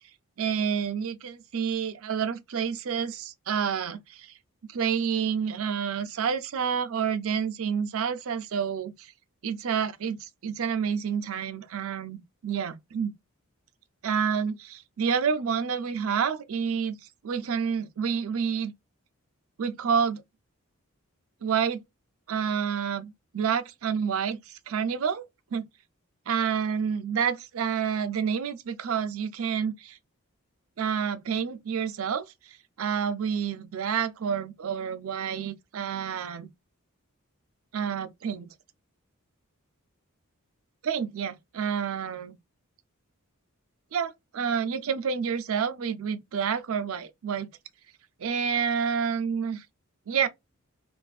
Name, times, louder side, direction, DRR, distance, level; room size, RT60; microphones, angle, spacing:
voice 1, 0.4-4.3 4.7-9.1 9.4-13.1 14.0-17.0 17.2-18.7 19.6-20.2 21.4-21.8 22.3-25.2 25.5-25.7 26.3-30.0 30.8-36.5 37.7-38.5 40.8-42.4 43.9-47.5 48.2-49.7 50.1-50.3, right 7 dB, 70° right, 0.4 m, -29 dB
2.5 x 2.4 x 2.3 m
head